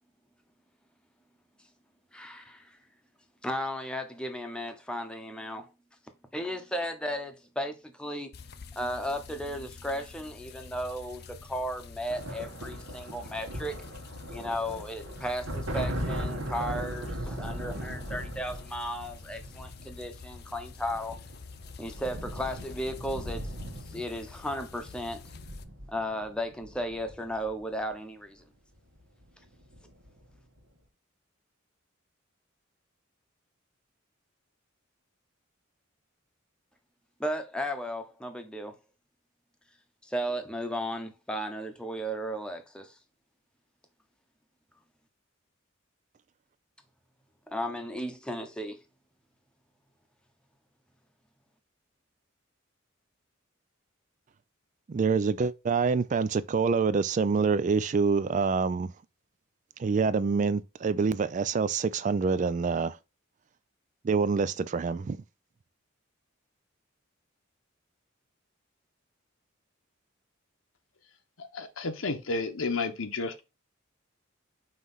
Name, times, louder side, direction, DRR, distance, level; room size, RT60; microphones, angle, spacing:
voice 1, 2.1-2.8 3.4-5.7 6.3-8.3 8.7-13.7 14.3-21.2 21.8-23.5 23.9-25.3 25.9-28.4 37.2-38.8 40.0-43.0 47.5-48.8, equal, 5° left, 0.8 m, -35 dB
sound 1, 8.3-25.6, left 5 dB, 50° left, 0.5 m, -48 dB
sound 2, 12.1-27.8 29.0-29.2 29.5-30.2, equal, 75° right, 1.5 m, -39 dB
voice 2, 54.9-58.9 59.8-63.0 64.0-65.2, right 5 dB, 35° right, 0.3 m, -26 dB
voice 3, 71.4-73.4, left 3 dB, 80° left, 1.0 m, -32 dB
5.6 x 3.1 x 5.5 m
head